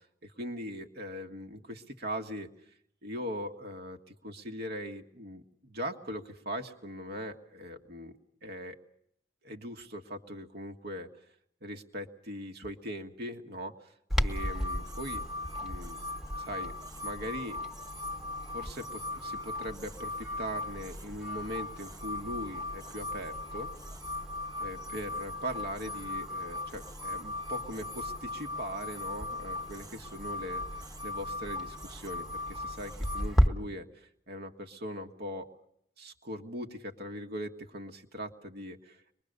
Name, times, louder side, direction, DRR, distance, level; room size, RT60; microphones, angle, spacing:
voice 1, 0.2-2.5 3.0-8.1 8.4-8.8 9.4-11.1 11.6-15.2 15.6-16.0 16.4-16.7 17.0-17.6 18.5-23.7 24.6-35.5 36.0-39.2, equal, 55° right, 6 dB, 1.7 m, -40 dB
Clock, 14.1-33.5, equal, ahead, 1.6 m, -37 dB
sound 1, 14.3-33.3, left 2 dB, 20° right, 0.8 m, -39 dB
24.5 x 21.5 x 6.7 m, 0.70 s
head